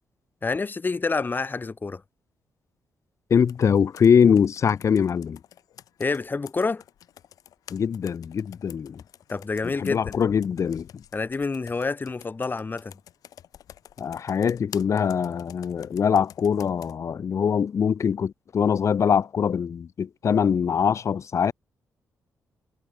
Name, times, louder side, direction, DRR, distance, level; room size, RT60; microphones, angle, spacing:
voice 1, 0.4-2.0 6.0-6.8 9.3-10.2 11.1-13.0, left 4 dB, 30° left, 2.8 m, -28 dB
voice 2, 3.3-5.4 7.7-9.0 9.8-11.0 14.0-21.5, left 7 dB, 55° left, 1.2 m, -23 dB
Computer keyboard, 3.5-17.0, left 11 dB, 80° left, 2.0 m, -48 dB
cardioid pair, 80°, 6 cm